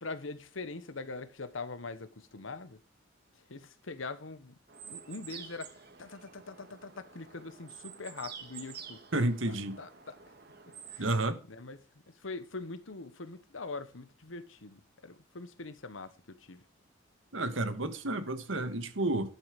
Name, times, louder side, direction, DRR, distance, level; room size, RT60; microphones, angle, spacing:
voice 1, 0.0-2.8 3.5-4.6 4.9-10.2 10.9-11.1 11.5-16.6, left 3 dB, 85° left, 1.2 m, -43 dB
sound 1, 4.7-11.2, right 7 dB, 55° right, 1.8 m, -49 dB
voice 2, 9.1-9.8 11.0-11.4 17.3-19.3, right 2 dB, 80° right, 1.7 m, -31 dB
11.5 x 7.5 x 5.2 m
head